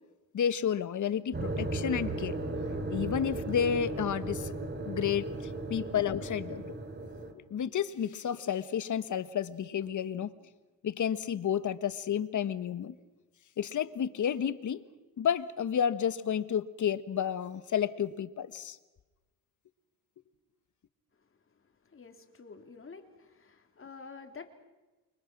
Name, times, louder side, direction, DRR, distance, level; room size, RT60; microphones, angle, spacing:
voice 1, 0.3-2.4 2.9-4.5 4.8-6.7 7.5-10.3 10.8-13.0 13.6-14.8 15.2-18.8, left 8 dB, 55° left, 14 dB, 1.5 m, -31 dB
sound 1, 1.3-7.3, right 2 dB, 30° right, 3.6 m, -36 dB
voice 2, 21.2-24.5, left 4 dB, 35° left, 6 dB, 3.3 m, -50 dB
29.0 x 24.5 x 6.1 m, 1.1 s
cardioid pair, 95°, 36 cm